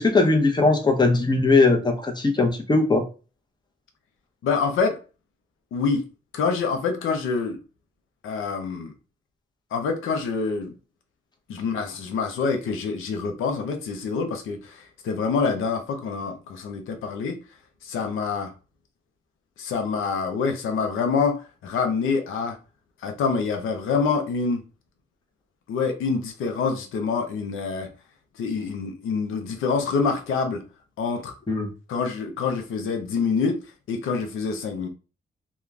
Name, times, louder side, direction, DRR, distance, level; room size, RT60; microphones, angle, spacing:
voice 1, 0.0-3.0 31.5-31.7, left 3 dB, 20° left, 0.8 m, -19 dB
voice 2, 4.4-5.0 5.7-6.0 6.3-7.6 8.2-8.9 9.7-10.7 11.5-17.4 17.8-18.5 19.6-22.6 23.0-24.6 25.7-27.9 28.4-30.6 31.0-31.3 31.9-33.6 33.9-34.9, left 5 dB, 85° left, 0.6 m, -26 dB
2.3 x 2.2 x 3.2 m
supercardioid pair, 55°, 20 cm